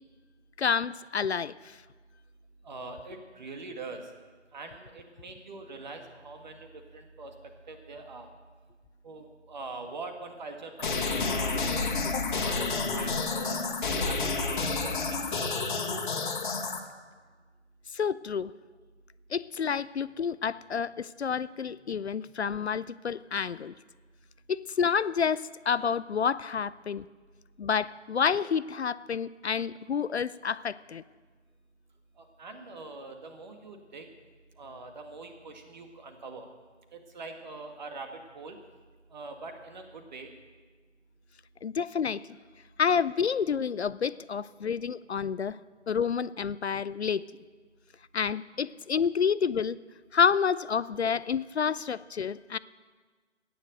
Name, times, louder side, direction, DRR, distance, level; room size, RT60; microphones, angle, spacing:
voice 1, 0.6-1.8 12.1-12.3 17.9-18.5 19.3-23.7 24.5-27.1 27.6-31.0 41.6-42.2 42.8-45.6 45.9-47.2 48.1-49.8 50.1-52.6, left 6 dB, 60° left, 17 dB, 0.5 m, -29 dB
voice 2, 2.6-4.0 4.5-7.3 7.7-8.3 9.0-11.9 12.3-13.6 13.9-15.2 32.2-34.1 34.6-36.5 37.1-38.1 38.3-38.6 39.1-40.3, right 3 dB, 35° right, 5 dB, 1.9 m, -43 dB
sound 1, 10.8-16.8, left 4 dB, 40° left, 1.8 m, -30 dB
15.5 x 9.9 x 7.8 m, 1.4 s
figure-of-eight pair, 155°, 36 cm